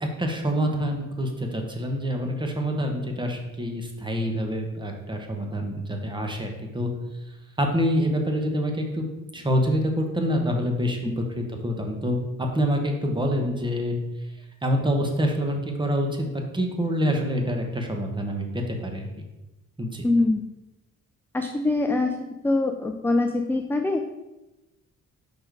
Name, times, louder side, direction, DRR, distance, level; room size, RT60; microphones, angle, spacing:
voice 1, 0.0-6.9 7.6-9.0 9.3-14.0 14.6-19.2 19.8-20.0, equal, 15° right, 3 dB, 1.0 m, -26 dB
voice 2, 20.0-20.4 21.3-22.1 22.4-24.2, left 2 dB, 10° left, 5 dB, 0.3 m, -23 dB
5.1 x 4.4 x 4.6 m, 1.0 s
cardioid pair, 115°, 30 cm